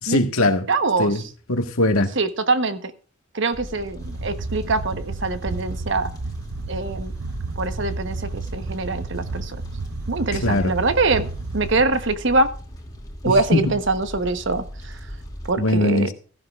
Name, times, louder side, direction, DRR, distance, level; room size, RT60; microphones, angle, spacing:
voice 1, 0.0-0.7 1.0-1.2 1.5-2.1 10.3-10.7 13.2-13.6 15.6-16.1, left 1 dB, 80° left, 1.7 m, -20 dB
voice 2, 0.7-1.1 2.2-2.8 3.3-6.1 6.7-7.1 7.6-9.6 10.1-11.3 11.5-12.5 13.2-15.0 15.5-16.1, right 3 dB, 60° right, 1.1 m, -23 dB
Fire, 3.5-15.5, equal, 20° left, 2.5 m, -38 dB
sound 1, 4.0-11.8, right 3 dB, 80° right, 0.6 m, -32 dB
16.0 x 14.0 x 2.5 m
head